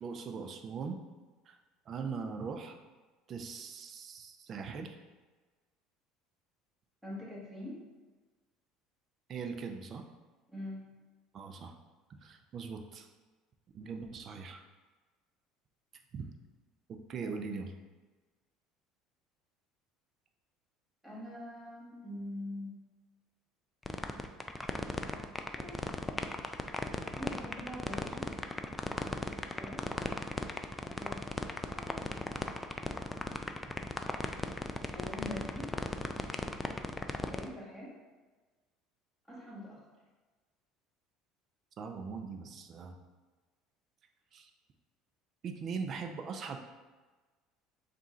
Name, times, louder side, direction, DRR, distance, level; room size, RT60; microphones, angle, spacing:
voice 1, 0.0-1.0 1.5-1.6 1.9-2.8 3.3-5.0 9.3-10.1 11.3-11.7 12.2-13.1 13.7-14.6 16.1-16.3 16.9-17.7 41.8-43.0 44.3-44.5 45.4-46.6, right 5 dB, 45° right, 5 dB, 0.5 m, -40 dB
voice 2, 7.0-7.8 10.5-10.9 17.2-17.3 21.0-22.7 25.6-25.9 27.1-28.3 29.5-29.9 30.8-31.3 31.7-32.9 34.9-35.7 37.2-37.9 39.3-39.8, left 1 dB, 5° right, -6 dB, 1.5 m, -44 dB
sound 1, 23.8-37.5, left 2 dB, 15° left, 0.3 m, -36 dB
3.6 x 2.5 x 4.3 m, 1.3 s
supercardioid pair, 100°, 0 cm